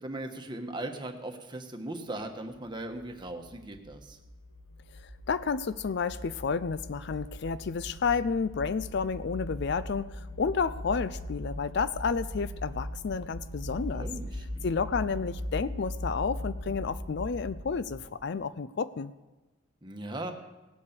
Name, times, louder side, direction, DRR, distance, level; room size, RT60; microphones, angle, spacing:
voice 1, 0.0-4.2 13.9-14.7 19.8-20.3, right 1 dB, 20° right, 5 dB, 1.2 m, -38 dB
sound 1, 2.9-18.2, left 1 dB, 80° left, 1.7 m, -40 dB
voice 2, 5.3-14.1 14.6-19.1, left 5 dB, 55° left, 14 dB, 0.4 m, -31 dB
17.5 x 8.4 x 6.8 m, 1.1 s
head